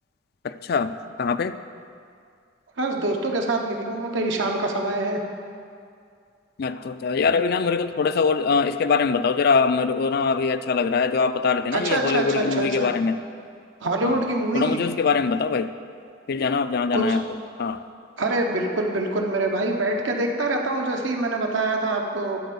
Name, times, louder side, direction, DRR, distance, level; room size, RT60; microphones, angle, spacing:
voice 1, 0.4-0.9 1.2-1.5 6.6-13.2 14.0-14.2 14.5-15.7 16.3-17.2 17.6-17.8, left 5 dB, 55° left, 11 dB, 0.4 m, -22 dB
voice 2, 2.8-5.2 11.7-12.9 13.8-14.8 16.9-17.2 18.2-22.4, right 2 dB, 80° right, 1 dB, 1.1 m, -25 dB
12.0 x 4.6 x 6.9 m, 2.3 s
head